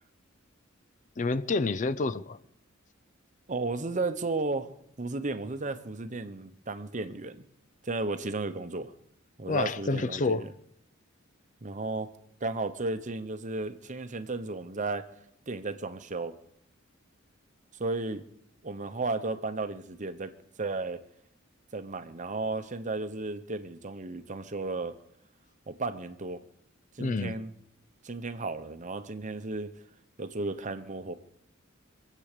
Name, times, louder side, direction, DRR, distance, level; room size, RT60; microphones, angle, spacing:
voice 1, 1.2-2.4 9.5-10.5 27.0-27.4, left 3 dB, 40° left, 0.5 m, -28 dB
voice 2, 3.5-4.7 5.0-7.5 7.8-8.9 9.4-10.5 11.6-12.1 12.4-15.1 15.5-16.3 17.8-18.2 18.6-20.3 20.6-21.0 21.7-24.9 25.7-26.4 26.9-27.5 28.0-29.7 30.2-31.1, right 3 dB, 35° right, 0.9 m, -34 dB
25.0 x 8.5 x 6.7 m
head